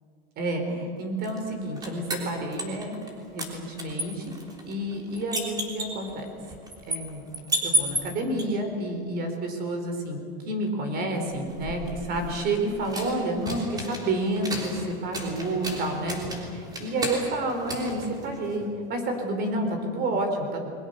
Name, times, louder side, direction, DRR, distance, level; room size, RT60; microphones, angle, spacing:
voice 1, 0.4-2.9 3.3-4.2 4.6-6.2 6.9-7.3 7.6-10.2 10.4-20.6, right 1 dB, 30° right, 5 dB, 4.4 m, -29 dB
sound 1, 1.2-3.1 3.4-8.4 11.2-18.7, right 1 dB, 10° right, 3.6 m, -34 dB
29.5 x 22.0 x 6.7 m, 2.4 s
supercardioid pair, 155°, 31 cm